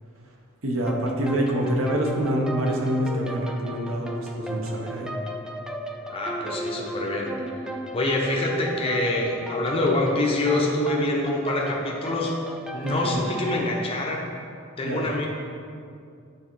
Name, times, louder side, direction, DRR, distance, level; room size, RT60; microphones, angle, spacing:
voice 1, 0.6-5.1 12.8-13.2 14.8-15.0, right 1 dB, 70° right, 0 dB, 1.0 m, -26 dB
sound 1, 0.9-13.7, right 1 dB, 5° right, 0.3 m, -35 dB
voice 2, 6.1-7.3 7.7-12.3 12.7-14.2 14.8-15.3, left 2 dB, 30° left, -2 dB, 0.7 m, -25 dB
8.4 x 3.7 x 4.5 m, 2.4 s
head